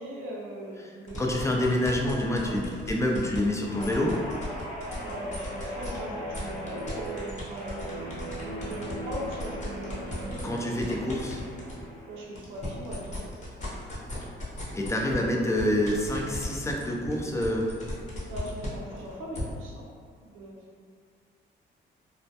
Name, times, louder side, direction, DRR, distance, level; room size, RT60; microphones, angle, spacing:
voice 1, 0.0-1.2 2.0-2.6 4.9-10.5 11.0-11.1 12.1-13.3 18.2-19.9 20.2-20.6, equal, 80° right, -4 dB, 0.5 m, -39 dB
sound 1, 1.1-6.0 6.3-11.8 12.2-19.4, left 1 dB, 40° left, 0.8 m, -38 dB
voice 2, 1.2-4.1 10.4-11.4 14.7-17.7, left 1 dB, 15° left, -1 dB, 0.3 m, -27 dB
Guitar, 3.7-12.2 12.6-13.0, right 1 dB, 80° left, 1.0 m, -39 dB
2.1 x 2.1 x 2.7 m, 2.1 s
cardioid pair, 90°, 20 cm